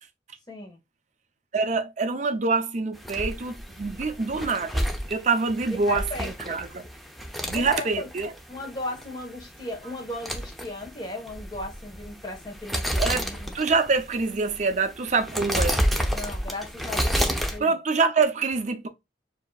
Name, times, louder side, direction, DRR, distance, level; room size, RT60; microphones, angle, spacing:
voice 1, 0.5-0.8 5.9-6.6 7.5-8.1 8.5-13.5 16.1-17.7, left 2 dB, 25° left, 1.3 m, -36 dB
voice 2, 1.5-6.8 7.5-8.3 13.0-13.2 13.5-15.8 17.6-18.9, right 4 dB, 40° right, 0.5 m, -25 dB
sound 1, 3.0-17.6, equal, ahead, 0.6 m, -30 dB
6.8 x 2.7 x 2.3 m
head